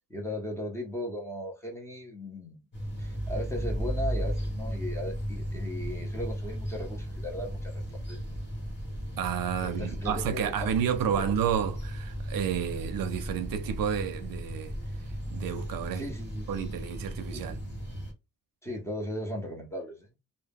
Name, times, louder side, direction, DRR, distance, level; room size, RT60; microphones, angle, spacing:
voice 1, 0.1-2.6 3.0-7.8 8.1-8.2 9.6-10.7 11.1-11.2 15.9-16.6 17.3-17.6 18.6-20.1, left 1 dB, 10° left, 0.6 m, -37 dB
sound 1, 2.7-18.1, equal, 35° left, 1.0 m, -35 dB
voice 2, 9.2-14.7 15.3-16.0 16.5-17.6, right 8 dB, 80° right, 0.5 m, -30 dB
2.1 x 2.0 x 3.4 m
wide cardioid pair, 170°, 34 cm